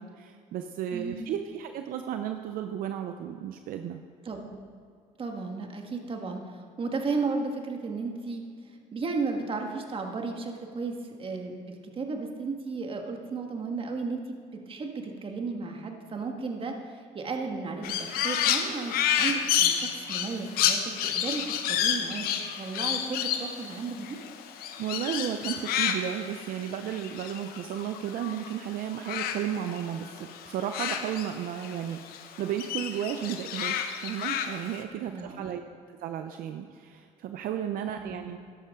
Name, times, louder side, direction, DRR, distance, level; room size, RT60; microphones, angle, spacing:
voice 1, 0.0-4.0 24.8-35.6 36.0-38.4, right 10 dB, 65° right, 7 dB, 0.6 m, -34 dB
voice 2, 0.9-1.3 4.2-4.5 5.2-8.4 8.9-22.3 22.6-24.2 35.1-35.4 38.0-38.3, right 4 dB, 35° right, 3 dB, 1.7 m, -34 dB
Crow, 17.8-28.5 28.8-31.8 32.1-34.8, left 9 dB, 75° left, 1.0 m, -30 dB
13.0 x 11.0 x 3.7 m, 2.2 s
cardioid pair, 95°, 16 cm